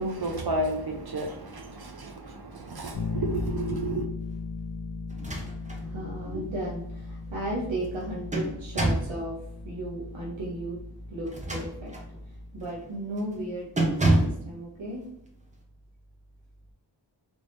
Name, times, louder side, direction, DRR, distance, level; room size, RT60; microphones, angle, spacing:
voice 1, 0.0-4.1, right 1 dB, 55° right, 0.7 m, -32 dB
Bass guitar, 2.9-12.8, left 4 dB, 75° left, 0.6 m, -38 dB
sound 1, 5.1-5.8 6.3-6.4 7.8-9.2 11.2-12.1 12.6-12.8 13.2-13.4 13.8-14.5, right 1 dB, 15° right, 0.8 m, -27 dB
voice 2, 5.5-10.8 11.1-11.9 12.2-15.0, right 1 dB, 85° right, 0.9 m, -35 dB
3.6 x 3.2 x 2.6 m
wide cardioid pair, 65°, 44 cm